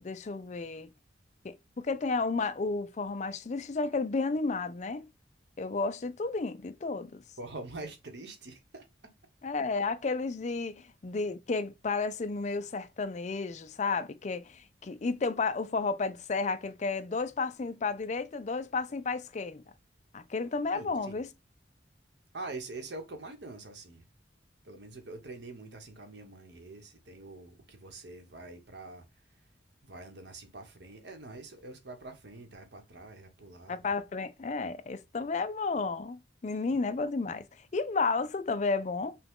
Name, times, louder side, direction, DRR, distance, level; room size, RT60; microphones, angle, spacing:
voice 1, 0.0-0.9 1.4-5.1 5.6-7.2 9.4-19.6 20.1-21.3 33.7-37.5 37.7-39.2, left 4 dB, 40° left, 0.4 m, -32 dB
voice 2, 7.4-8.9 20.7-21.2 22.3-24.0 24.6-29.0 29.8-33.9, right 2 dB, 65° right, 1.1 m, -45 dB
5.7 x 2.3 x 3.6 m
head